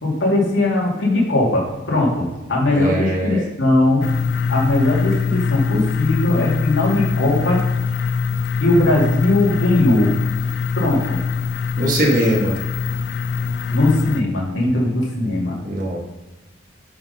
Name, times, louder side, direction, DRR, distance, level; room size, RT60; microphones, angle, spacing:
voice 1, 0.0-4.1 4.5-7.6 8.6-10.1 10.8-11.2 13.7-15.6, left 2 dB, 70° left, -3 dB, 2.4 m, -19 dB
voice 2, 2.7-3.4 11.8-12.6 15.6-16.0, right 1 dB, 40° right, -1 dB, 1.5 m, -21 dB
sound 1, 4.0-14.2, left 5 dB, 55° left, 0.3 m, -23 dB
6.1 x 4.8 x 5.4 m, 1.1 s
head